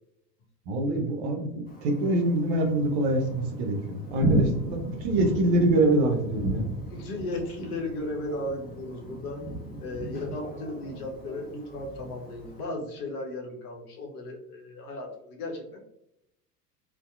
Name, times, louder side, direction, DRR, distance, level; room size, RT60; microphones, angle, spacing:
voice 1, 0.7-6.7, right 1 dB, 45° right, 3 dB, 0.6 m, -25 dB
Thunder, 1.7-12.6, right 1 dB, 20° left, 0.6 m, -34 dB
voice 2, 6.9-9.4 9.8-15.8, left 2 dB, 65° left, 1 dB, 0.8 m, -35 dB
2.7 x 2.1 x 2.3 m, 0.79 s
figure-of-eight pair, 80°, 48 cm